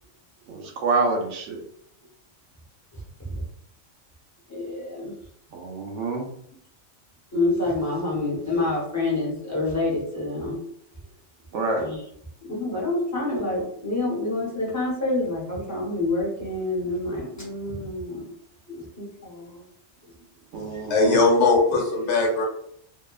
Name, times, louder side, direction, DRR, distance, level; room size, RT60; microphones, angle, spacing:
voice 1, 0.5-1.6 5.5-6.3 11.5-11.9 20.5-21.2, right 3 dB, 80° right, 2 dB, 0.9 m, -27 dB
voice 2, 4.5-5.2 7.3-10.6 11.8-12.0 12.4-18.3 18.7-19.6, left 2 dB, 20° left, -5 dB, 0.6 m, -27 dB
voice 3, 20.7-22.4, left 3 dB, 75° left, -1 dB, 1.0 m, -20 dB
2.8 x 2.1 x 2.3 m, 0.68 s
omnidirectional pair, 1.2 m